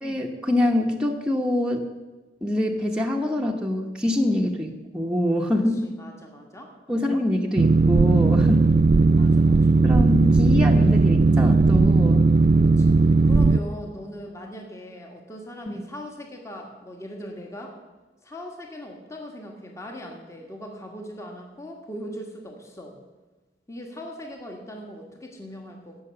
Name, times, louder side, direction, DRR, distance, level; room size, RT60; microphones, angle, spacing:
voice 1, 0.0-1.8 2.4-5.9 6.9-8.6 9.8-12.3 15.7-15.8, left 1 dB, 5° right, 0 dB, 1.0 m, -25 dB
voice 2, 5.8-6.7 8.4-8.7 9.2-9.8 12.6-17.8 18.2-23.0 23.7-26.0, equal, 15° left, 1 dB, 1.5 m, -40 dB
Boat Water vehicle, 7.6-13.6, right 3 dB, 35° right, 0.3 m, -17 dB
16.0 x 6.3 x 6.9 m, 1.2 s
head